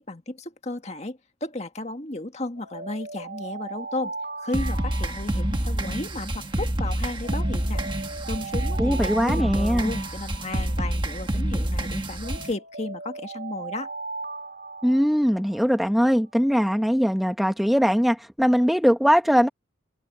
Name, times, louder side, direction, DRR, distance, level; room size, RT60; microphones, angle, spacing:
voice 1, 0.0-7.8 8.3-13.9, left 2 dB, 35° left, 1.9 m, -34 dB
Alarm, 2.6-6.7 7.2-11.7 12.2-16.0, right 3 dB, 55° right, 2.0 m, -39 dB
sound 1, 4.5-12.5, right 1 dB, 25° right, 1.4 m, -27 dB
voice 2, 8.8-9.9 14.8-19.5, equal, ahead, 1.4 m, -21 dB
head